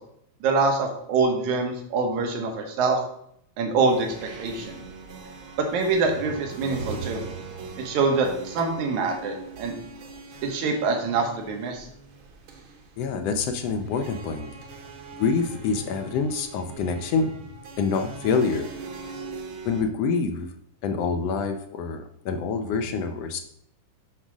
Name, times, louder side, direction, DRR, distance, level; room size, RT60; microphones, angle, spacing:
voice 1, 0.4-3.0 3.6-4.1 4.4-4.8 5.7-7.2 7.8-9.7 10.4-11.9, right 4 dB, 85° right, 2 dB, 2.6 m, -25 dB
sound 1, 3.7-19.8, right 4 dB, 60° right, 1.5 m, -40 dB
voice 2, 13.0-14.5 15.2-17.5 17.8-18.7 19.6-20.5 20.8-23.4, left 5 dB, 75° left, 7 dB, 1.5 m, -26 dB
7.9 x 3.6 x 6.1 m, 0.71 s
omnidirectional pair, 3.3 m